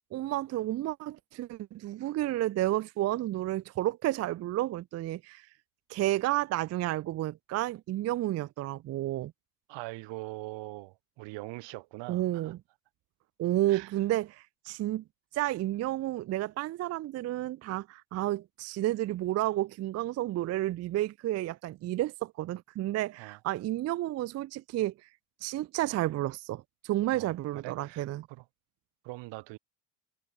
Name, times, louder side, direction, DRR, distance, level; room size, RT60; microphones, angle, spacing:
voice 1, 0.1-5.5 5.9-9.3 12.1-12.6 13.4-15.0 15.3-25.1 25.4-28.3, right 15 dB, 40° right, 0.4 m, -31 dB
voice 2, 9.7-12.5 13.7-13.9 23.2-23.4 27.1-28.4 29.0-29.6, right 22 dB, 90° right, 2.3 m, -42 dB
cardioid pair, 135°, 42 cm